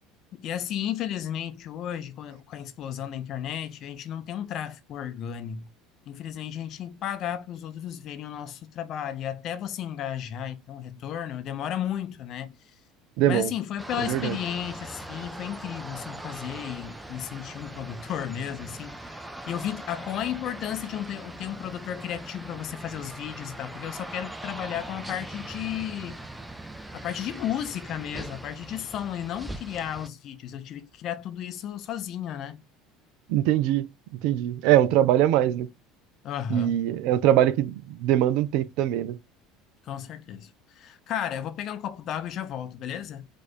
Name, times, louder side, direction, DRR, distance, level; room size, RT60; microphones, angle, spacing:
voice 1, 0.3-5.7 6.1-12.7 13.3-19.0 19.5-26.2 26.9-32.6 36.2-36.8 39.8-43.3, left 10 dB, 45° left, 0.6 m, -34 dB
voice 2, 13.2-13.5 14.1-14.4 33.3-33.9 34.2-35.7 36.5-39.2, right 12 dB, 55° right, 0.4 m, -22 dB
sound 1, 13.8-30.1, right 1 dB, 5° right, 0.6 m, -41 dB
4.1 x 2.5 x 4.3 m
figure-of-eight pair, 65°, 0 cm